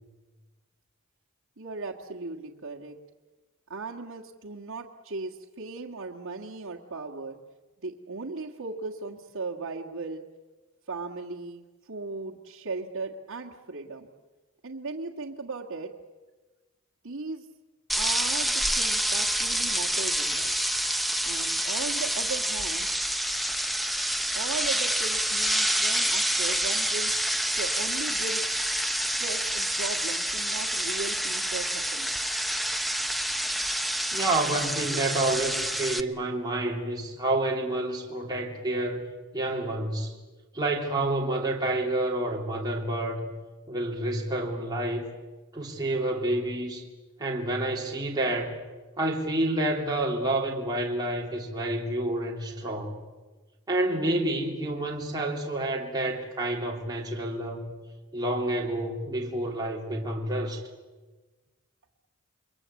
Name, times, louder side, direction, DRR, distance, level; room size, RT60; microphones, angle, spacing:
voice 1, 1.6-3.0 3.7-7.4 7.8-10.2 10.9-14.1 14.6-15.9 17.0-17.5 18.0-20.6 21.3-22.9 24.3-28.5 29.2-32.4, right 3 dB, 65° right, 1.8 m, -37 dB
sound 1, 17.9-36.0, right 1 dB, ahead, 0.9 m, -28 dB
voice 2, 34.1-39.1 39.3-40.2 40.5-43.3 43.7-45.0 45.5-46.8 47.2-48.6 49.0-53.0 53.7-57.7 58.1-60.6, right 1 dB, 20° right, 3.1 m, -29 dB
29.0 x 22.5 x 8.4 m
head